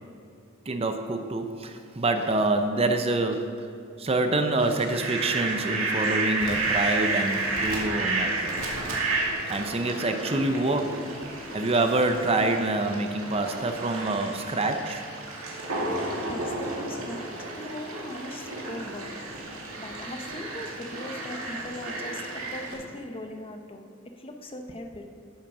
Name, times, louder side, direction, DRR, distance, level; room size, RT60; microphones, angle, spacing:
voice 1, 0.7-3.7 4.0-8.6 9.5-11.0 11.5-15.0, right 2 dB, 30° right, 6 dB, 0.6 m, -26 dB
Fowl, 4.6-22.7, right 2 dB, 85° right, 2.2 m, -31 dB
voice 2, 16.3-19.1 19.8-25.1, left 1 dB, 25° left, 5 dB, 0.8 m, -40 dB
10.0 x 7.5 x 6.2 m, 2.4 s
head